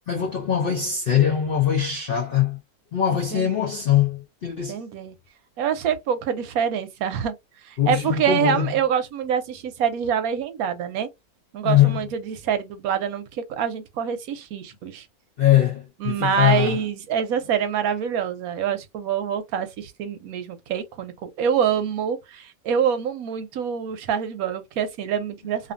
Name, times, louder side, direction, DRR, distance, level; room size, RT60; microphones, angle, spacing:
voice 1, 0.1-2.6 2.9-4.8 7.8-8.8 11.6-12.0 15.4-16.8, left 10 dB, 70° left, 0.5 m, -21 dB
voice 2, 3.3-3.8 4.7-5.1 5.6-7.3 7.6-11.1 11.5-15.0 16.0-25.7, right 8 dB, 75° right, 1.0 m, -26 dB
2.7 x 2.5 x 2.4 m
omnidirectional pair, 1.6 m